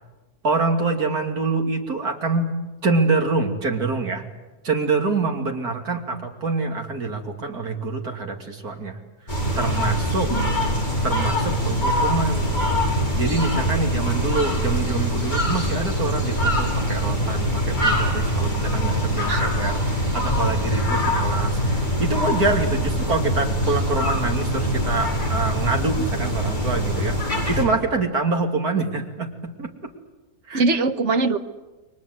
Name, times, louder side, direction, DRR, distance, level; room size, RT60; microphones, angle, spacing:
voice 1, 0.4-2.5 2.8-4.2 4.6-9.0 9.5-10.3 11.0-12.5 12.9-29.9 30.5-30.6, right 3 dB, 80° right, 2 dB, 3.3 m, -25 dB
sound 1, 9.3-27.6, equal, 30° left, 5.7 m, -23 dB
voice 2, 10.3-10.7 19.3-19.4 30.5-31.4, right 3 dB, 50° right, 9 dB, 1.5 m, -22 dB
29.5 x 23.0 x 8.1 m, 1.2 s
omnidirectional pair, 1.6 m